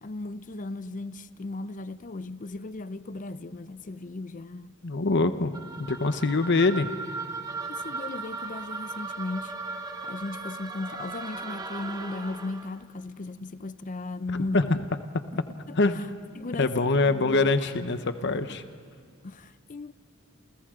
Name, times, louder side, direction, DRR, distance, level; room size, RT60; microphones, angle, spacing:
voice 1, 0.0-4.8 7.7-9.5 10.0-14.8 15.3-15.4 15.7-15.8 16.4-17.7 19.2-19.9, left 2 dB, 40° left, 0.6 m, -36 dB
voice 2, 4.8-5.5 5.8-6.9 14.5-14.7 15.7-16.1 16.6-18.6, left 3 dB, 55° left, 0.9 m, -24 dB
sound 1, 5.5-12.8, right 3 dB, 20° right, 1.1 m, -37 dB
29.0 x 28.5 x 3.8 m
head